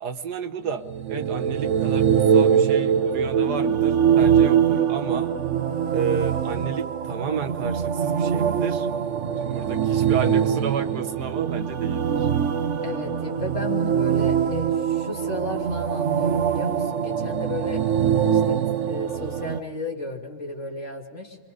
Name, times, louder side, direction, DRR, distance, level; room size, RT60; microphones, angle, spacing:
voice 1, 0.0-5.3 5.9-8.9 9.4-12.3, right 6 dB, 70° right, 6 dB, 1.6 m, -31 dB
sound 1, 0.8-19.6, right 8 dB, 50° right, 1.0 m, -23 dB
voice 2, 12.8-17.8 18.3-18.6 18.9-21.4, left 2 dB, 40° left, 1 dB, 3.1 m, -33 dB
30.0 x 24.0 x 5.1 m, 1.3 s
omnidirectional pair, 1.9 m